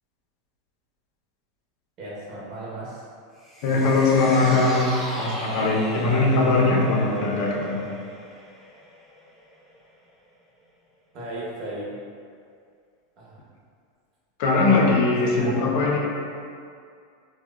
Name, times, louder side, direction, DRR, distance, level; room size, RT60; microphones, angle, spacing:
voice 1, 2.0-3.0 3.7-3.9 5.9-6.2 11.1-11.9 13.2-13.4 15.2-15.5, right 1 dB, 45° right, -6 dB, 0.9 m, -36 dB
sound 1, 3.4-9.9 10.2-10.3, equal, ahead, 0.7 m, -38 dB
voice 2, 3.6-7.9 14.4-16.0, left 3 dB, 60° left, -3 dB, 0.5 m, -21 dB
3.5 x 2.1 x 2.2 m, 2.3 s
hypercardioid pair, 95°, 0 cm